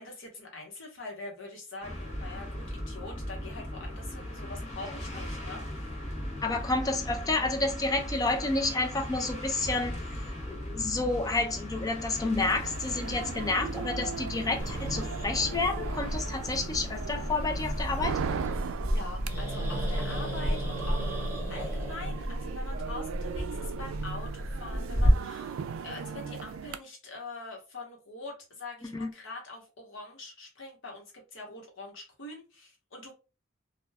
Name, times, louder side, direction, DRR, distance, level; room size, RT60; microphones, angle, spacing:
voice 1, 0.0-5.9 18.9-21.1 21.5-33.1, left 2 dB, 70° left, 1.0 m, -44 dB
sound 1, 1.8-18.4, equal, 35° left, 0.8 m, -38 dB
voice 2, 6.4-10.0 10.5-18.2 28.9-29.1, left 3 dB, 20° left, 0.4 m, -30 dB
sound 2, 12.4-26.8, right 6 dB, 75° right, 0.3 m, -39 dB
Growling, 14.6-25.1, equal, 10° right, 1.0 m, -33 dB
2.3 x 2.2 x 3.3 m
head